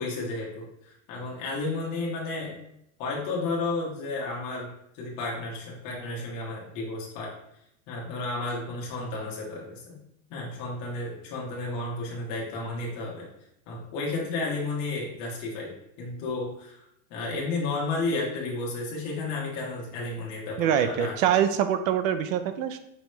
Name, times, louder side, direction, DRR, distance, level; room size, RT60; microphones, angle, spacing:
voice 1, 0.0-2.6 3.0-7.3 7.9-10.0 10.3-13.3 13.7-16.8 17.1-21.3, left 3 dB, 45° left, -4 dB, 1.4 m, -32 dB
voice 2, 20.6-22.8, right 9 dB, 75° right, 10 dB, 0.6 m, -24 dB
5.4 x 3.1 x 3.2 m, 0.79 s
supercardioid pair, 175°, 41 cm